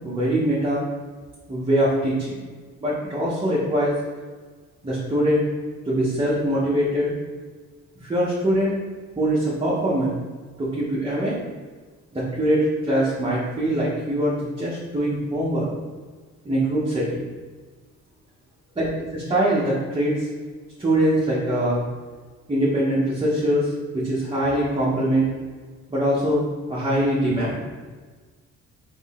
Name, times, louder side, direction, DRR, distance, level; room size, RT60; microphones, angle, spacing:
voice 1, 0.0-0.8 1.5-2.4 2.8-3.9 4.8-5.5 5.8-7.1 8.0-8.8 9.2-10.1 10.6-11.3 12.1-15.7 16.4-17.1 18.8-20.3 20.8-21.8 22.5-25.3 25.9-27.6, right 1 dB, 20° right, -8 dB, 1.1 m, -23 dB
3.9 x 3.2 x 3.7 m, 1.4 s
cardioid pair, 90°, 30 cm